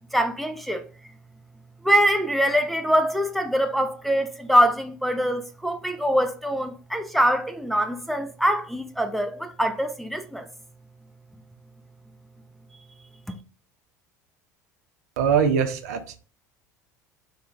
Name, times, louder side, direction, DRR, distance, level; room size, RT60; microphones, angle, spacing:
voice 1, 0.1-0.8 1.8-10.5 13.3-13.4, equal, ahead, 0.4 m, -23 dB
voice 2, 15.2-16.2, right 7 dB, 65° right, 0.5 m, -22 dB
3.2 x 2.3 x 3.7 m
figure-of-eight pair, 65°, 9 cm